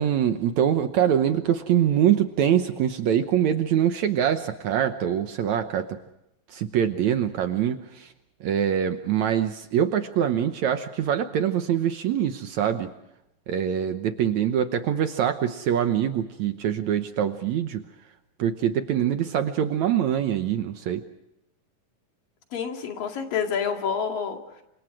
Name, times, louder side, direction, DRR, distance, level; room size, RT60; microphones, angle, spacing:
voice 1, 0.0-6.0 6.5-8.1 8.4-12.9 13.5-17.8 18.4-21.0, right 9 dB, 65° right, 8 dB, 2.0 m, -24 dB
voice 2, 22.5-24.6, left 7 dB, 70° left, 3 dB, 4.0 m, -28 dB
29.0 x 26.0 x 4.8 m, 0.85 s
omnidirectional pair, 4.1 m